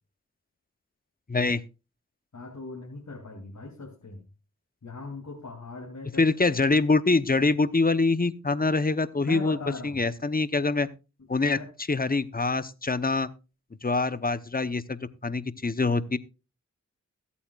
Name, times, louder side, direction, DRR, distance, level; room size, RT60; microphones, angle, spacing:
voice 1, 1.3-1.6 6.2-9.6 9.8-10.9 11.3-11.6 11.9-13.3 13.8-16.2, left 3 dB, 30° left, 14 dB, 0.9 m, -24 dB
voice 2, 2.3-4.3 4.8-6.3 9.2-10.0 11.4-11.7, left 3 dB, 70° left, -1 dB, 3.1 m, -39 dB
21.5 x 8.6 x 2.4 m, 0.30 s
cardioid pair, 45°, 30 cm